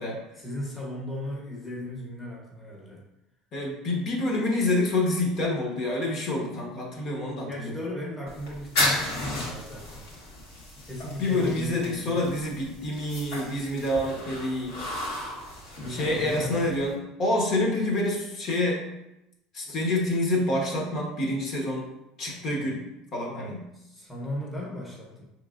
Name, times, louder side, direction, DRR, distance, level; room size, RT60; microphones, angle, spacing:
voice 1, 0.4-3.0 7.5-10.0 10.8-12.2 15.8-17.0 23.7-25.2, left 1 dB, 5° left, -4 dB, 0.8 m, -36 dB
voice 2, 3.5-7.7 11.2-14.7 15.9-18.8 19.5-21.9 22.2-22.8 23.1-23.7, left 1 dB, 45° left, -1 dB, 1.0 m, -27 dB
sound 1, 8.3-17.0, left 2 dB, 75° left, 1.5 m, -34 dB
4.7 x 3.1 x 2.4 m, 0.89 s
cardioid pair, 145°, 0 cm